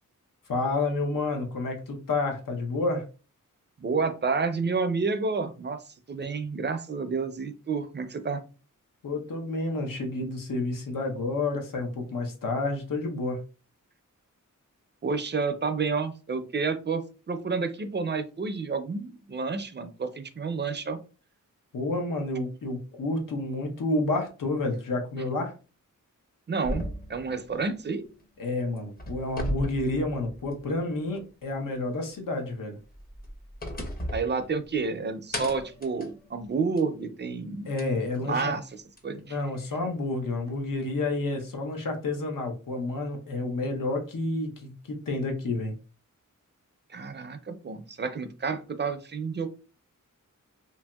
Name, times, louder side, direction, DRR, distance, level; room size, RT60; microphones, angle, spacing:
voice 1, 0.5-3.1 9.0-13.4 21.7-25.5 28.4-32.8 37.7-38.5 39.1-45.7, left 2 dB, 90° left, 3 dB, 0.8 m, -30 dB
voice 2, 3.8-5.8 6.1-8.4 15.0-21.0 26.5-28.0 34.1-37.7 38.3-38.6 39.0-39.4 46.9-49.5, right 4 dB, 35° right, 9 dB, 0.4 m, -30 dB
sound 1, 26.6-28.4 28.8-30.8 31.1-31.2 32.8-34.9 35.3-37.0 37.8-37.9 39.0-39.1, equal, 30° left, 0.6 m, -36 dB
2.8 x 2.7 x 2.2 m, 0.34 s
wide cardioid pair, 90°, 32 cm